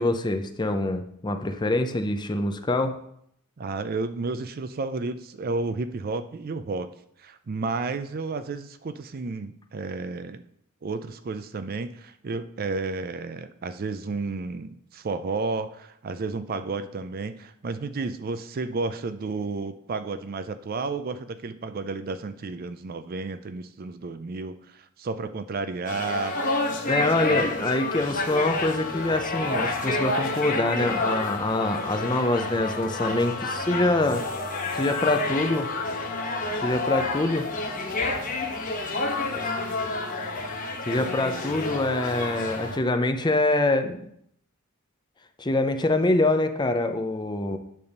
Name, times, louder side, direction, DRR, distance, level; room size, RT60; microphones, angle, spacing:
voice 1, 0.0-2.9 26.9-34.2 34.7-35.7 36.6-37.5 40.9-44.0 45.4-47.6, left 2 dB, 20° left, 7 dB, 0.6 m, -25 dB
voice 2, 3.6-6.9 7.2-10.4 10.8-26.3 26.7-27.4, right 3 dB, 45° right, 11 dB, 0.4 m, -32 dB
sound 1, 25.9-42.8, left 2 dB, 40° left, 1.0 m, -29 dB
9.4 x 3.5 x 6.6 m, 0.71 s
head